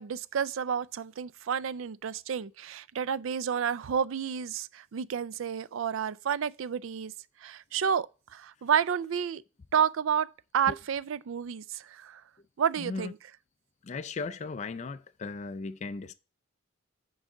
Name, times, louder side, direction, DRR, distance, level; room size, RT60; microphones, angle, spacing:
voice 1, 0.0-7.1 7.4-9.4 9.7-12.2 12.6-13.2, right 7 dB, 75° right, 0.4 m, -30 dB
voice 2, 12.8-13.1 13.8-16.1, left 4 dB, 35° left, 0.3 m, -37 dB
6.3 x 4.7 x 6.4 m
head